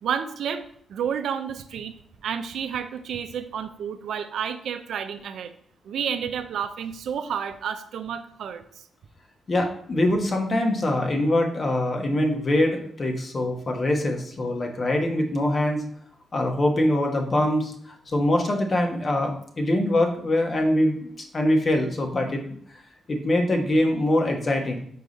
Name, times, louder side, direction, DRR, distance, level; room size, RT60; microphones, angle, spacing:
voice 1, 0.0-0.6 0.9-2.0 2.2-5.5 5.8-8.6, right 8 dB, 75° right, 9 dB, 0.5 m, -30 dB
voice 2, 9.5-15.8 16.3-17.7 18.1-22.4 23.1-24.8, left 1 dB, 40° left, 3 dB, 1.2 m, -23 dB
5.0 x 4.7 x 4.0 m, 0.64 s
cardioid pair, 70°, 0 cm